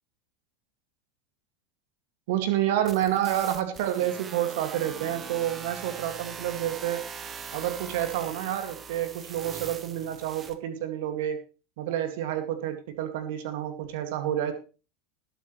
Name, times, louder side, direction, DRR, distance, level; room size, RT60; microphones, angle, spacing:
voice 1, 2.3-7.0 7.5-11.4 11.8-14.5, right 12 dB, 55° right, 7 dB, 2.3 m, -29 dB
sound 1, 2.9-10.6, right 6 dB, 25° right, 1.3 m, -41 dB
19.0 x 8.5 x 3.3 m, 0.34 s
figure-of-eight pair, 80°, 0 cm